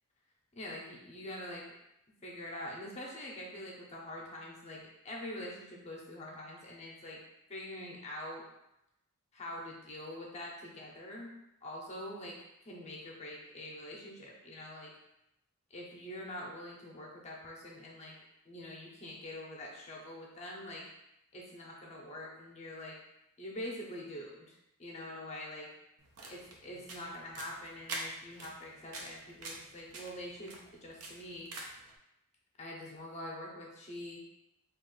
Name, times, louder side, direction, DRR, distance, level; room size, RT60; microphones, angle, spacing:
voice 1, 0.6-1.7 2.2-7.2 7.5-8.4 9.3-11.3 11.6-12.3 12.6-14.9 15.7-18.2 18.5-20.8 21.3-22.9 23.4-25.7 26.3-31.5 32.6-34.2, left 1 dB, 30° left, -2 dB, 0.6 m, -44 dB
sound 1, 26.0-31.9, right 2 dB, 75° right, 0.6 m, -46 dB
2.9 x 2.4 x 3.8 m, 0.87 s
head